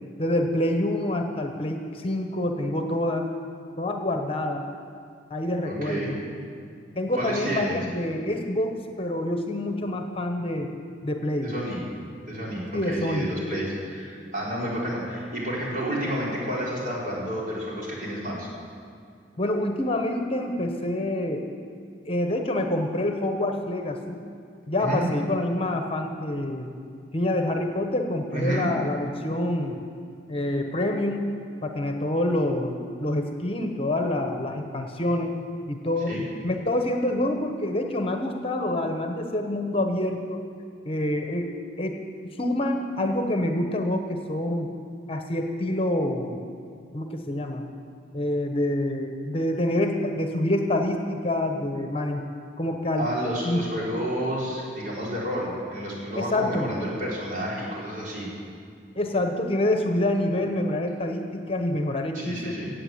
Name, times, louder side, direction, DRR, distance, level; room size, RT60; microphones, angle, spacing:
voice 1, 0.2-3.3 3.8-4.6 5.3-6.1 7.0-10.7 11.0-11.5 12.7-13.3 19.4-21.4 22.1-24.2 24.7-26.7 27.1-29.8 30.3-31.3 31.6-35.3 35.7-36.1 36.4-40.4 40.8-41.5 41.8-42.0 42.2-44.7 45.1-46.4 46.9-47.7 48.1-52.2 52.6-53.1 53.4-53.6 56.1-56.7 59.0-62.5, left 1 dB, 35° left, 5 dB, 1.0 m, -27 dB
voice 2, 5.6-6.1 7.1-7.8 11.4-11.8 12.3-18.5 24.8-25.1 28.3-28.7 36.1-36.2 52.9-58.2 62.1-62.7, equal, 50° right, -5 dB, 4.2 m, -30 dB
17.0 x 8.0 x 7.9 m, 2.3 s
head